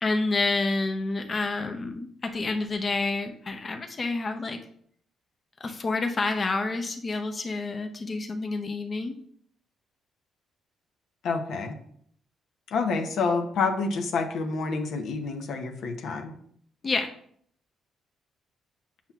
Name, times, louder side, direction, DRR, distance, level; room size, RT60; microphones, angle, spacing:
voice 1, 0.0-4.6 5.6-9.2 16.8-17.1, left 3 dB, 35° left, 5 dB, 0.6 m, -28 dB
voice 2, 11.2-11.8 12.7-16.3, left 4 dB, 75° left, 5 dB, 0.8 m, -28 dB
7.2 x 5.7 x 2.4 m, 0.63 s
cardioid pair, 90°, 0 cm